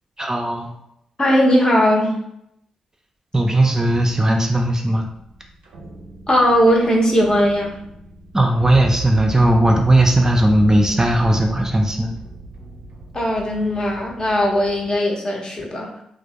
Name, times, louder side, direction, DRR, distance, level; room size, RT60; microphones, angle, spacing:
voice 1, 0.2-0.7 3.3-5.1 8.3-12.1, right 1 dB, 25° right, 2 dB, 0.4 m, -17 dB
voice 2, 1.2-2.2 6.3-7.8 13.1-15.9, equal, 35° left, -1 dB, 0.7 m, -18 dB
sound 1, 3.7-15.0, right 3 dB, 85° right, 0.4 m, -35 dB
2.1 x 2.0 x 2.8 m, 0.76 s
supercardioid pair, 45°, 2 cm